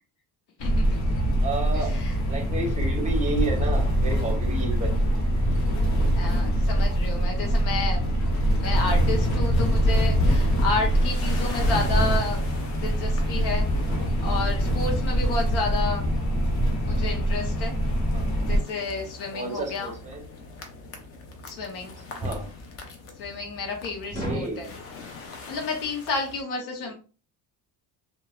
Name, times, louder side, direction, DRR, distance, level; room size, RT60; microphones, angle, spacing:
voice 1, 0.6-1.0 1.7-2.2 6.2-8.1 8.5-12.4 12.7-13.7 14.2-16.1 16.8-17.7 18.5-19.9 21.5-21.9 23.2-24.7 25.5-26.9, left 3 dB, 90° left, 1 dB, 0.8 m, -31 dB
sound 1, 0.6-18.6, equal, 65° left, 1.2 m, -23 dB
voice 2, 1.4-2.0 2.3-5.2 18.1-18.5 19.3-20.2 22.1-22.5 24.2-24.7 26.8-26.9, right 3 dB, 20° right, 1 dB, 0.6 m, -32 dB
sound 2, 10.4-26.4, left 3 dB, 35° left, 0.5 m, -42 dB
sound 3, 20.3-20.4 22.2-22.5 24.1-24.6, equal, 20° left, 0.9 m, -31 dB
2.9 x 2.2 x 2.3 m, 0.36 s
cardioid pair, 165°, 40 cm